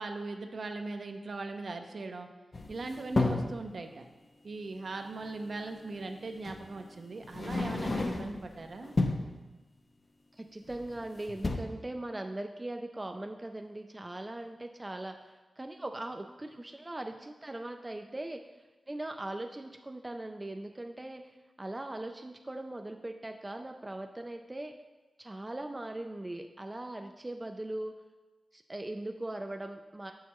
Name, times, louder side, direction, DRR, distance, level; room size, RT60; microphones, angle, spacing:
voice 1, 0.0-2.3 2.7-4.1 4.4-8.9, right 3 dB, 60° right, 5 dB, 0.6 m, -39 dB
sound 1, 2.5-3.6 5.2-5.3 6.4-6.7 7.2-8.5 8.8-9.3 10.7-11.0 11.3-11.6, left 2 dB, 40° left, 0.6 m, -31 dB
voice 2, 10.3-18.4 18.9-24.7 25.2-28.0 28.5-30.1, right 1 dB, 20° right, 5 dB, 0.4 m, -40 dB
7.2 x 6.4 x 3.0 m, 1.2 s
wide cardioid pair, 75°, 0 cm